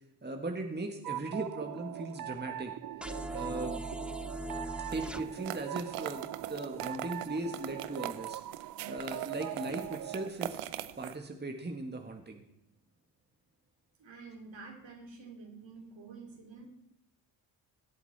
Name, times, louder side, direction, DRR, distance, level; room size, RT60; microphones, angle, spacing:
voice 1, 0.2-2.7 3.3-3.8 4.9-8.4 8.8-10.6 11.0-12.4, right 2 dB, 20° right, 4 dB, 1.9 m, -38 dB
sound 1, 1.0-10.3, right 13 dB, 45° right, 0.4 m, -41 dB
sound 2, 3.0-5.2, right 1 dB, ahead, 0.8 m, -39 dB
sound 3, 4.9-11.2, right 13 dB, 85° right, 0.7 m, -42 dB
voice 2, 14.0-16.7, right 4 dB, 65° right, 2 dB, 3.8 m, -49 dB
18.0 x 8.1 x 4.3 m, 0.83 s
supercardioid pair, 50°, 49 cm